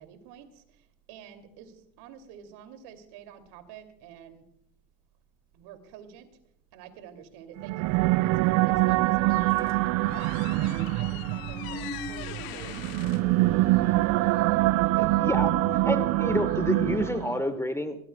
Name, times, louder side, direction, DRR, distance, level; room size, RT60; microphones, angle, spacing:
voice 1, 0.0-4.4 5.5-6.3 6.7-13.9, right 8 dB, 60° right, 8 dB, 2.8 m, -48 dB
sound 1, 7.6-17.4, right 20 dB, 40° right, 0.4 m, -25 dB
sound 2, 9.2-14.4, left 18 dB, 50° left, 0.9 m, -43 dB
sound 3, 9.3-17.4, left 4 dB, 30° left, 3.6 m, -44 dB
voice 2, 15.0-15.5 15.8-18.0, left 1 dB, 5° left, 9 dB, 1.2 m, -29 dB
22.5 x 18.0 x 2.3 m, 0.70 s
hypercardioid pair, 75°, 45 cm